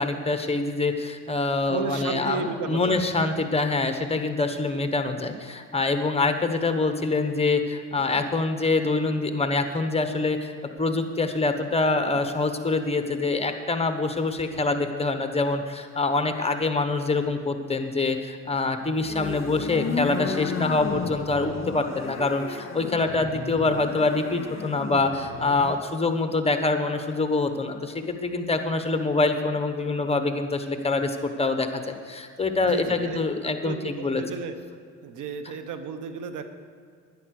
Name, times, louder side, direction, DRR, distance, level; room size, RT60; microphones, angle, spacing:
voice 1, 0.0-10.5 10.8-34.2, left 3 dB, 20° left, 7 dB, 1.2 m, -25 dB
voice 2, 1.7-3.0 32.6-33.2 33.6-34.6 35.0-36.4, right 6 dB, 80° right, 9 dB, 1.1 m, -33 dB
sound 1, 19.0-25.8, left 5 dB, 45° left, 1.9 m, -33 dB
11.0 x 10.5 x 6.5 m, 2.2 s
cardioid pair, 90°, 30 cm